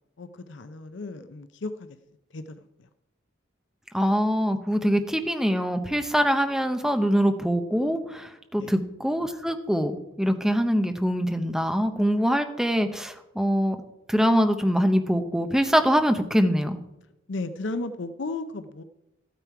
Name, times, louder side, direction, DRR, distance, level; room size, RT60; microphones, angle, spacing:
voice 1, 0.2-2.0 2.3-2.6 8.6-8.7 17.3-18.8, left 2 dB, 60° left, 10 dB, 0.6 m, -34 dB
voice 2, 3.9-9.9 10.2-13.8 14.1-16.8, equal, 5° right, 7 dB, 0.8 m, -23 dB
13.5 x 9.1 x 4.7 m, 0.91 s
head